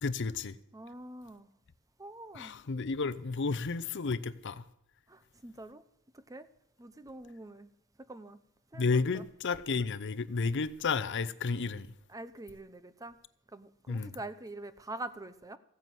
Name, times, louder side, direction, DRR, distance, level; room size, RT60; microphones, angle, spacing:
voice 1, 0.0-0.6 2.3-4.6 8.7-11.9 13.9-14.2, left 4 dB, 55° left, 0.6 m, -32 dB
voice 2, 0.7-1.5 2.0-2.6 5.1-5.8 6.1-6.5 6.8-7.7 8.1-8.4 8.7-9.3 12.1-13.2 13.5-15.6, right 2 dB, 15° right, 0.6 m, -45 dB
15.5 x 9.5 x 7.6 m
head